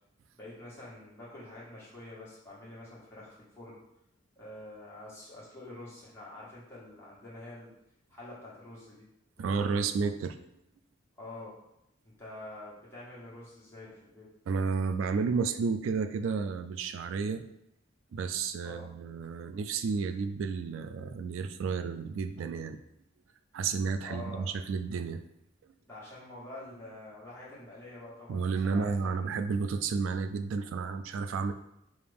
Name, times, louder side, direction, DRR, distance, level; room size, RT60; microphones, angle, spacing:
voice 1, 0.4-3.8 4.3-7.7 8.1-9.0 9.4-9.9 11.2-11.6 12.0-14.3 18.6-18.9 24.0-24.5 25.9-29.2, left 2 dB, 15° left, -8 dB, 1.5 m, -47 dB
voice 2, 9.4-10.4 14.5-17.4 18.1-22.8 23.5-25.2 28.3-31.5, right 5 dB, 85° right, 9 dB, 0.3 m, -31 dB
4.9 x 2.5 x 3.4 m, 0.82 s
head